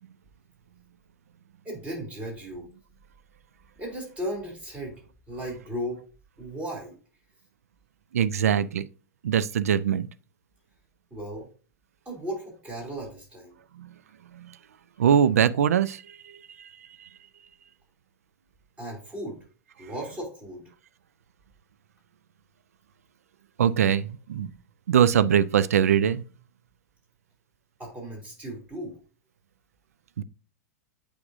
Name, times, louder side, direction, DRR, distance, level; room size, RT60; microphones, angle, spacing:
voice 1, 1.6-2.7 3.8-5.0 5.3-6.0 6.4-6.9 11.1-11.5 12.1-13.6 15.0-15.1 18.8-19.4 19.8-20.6 27.8-28.9, equal, 15° right, 2.7 m, -36 dB
voice 2, 8.1-8.9 9.2-10.1 13.8-13.9 15.0-16.0 23.6-24.5 24.9-26.2 30.2-30.3, right 8 dB, 65° right, 0.4 m, -22 dB
8.2 x 5.1 x 2.6 m
figure-of-eight pair, 100°, 9 cm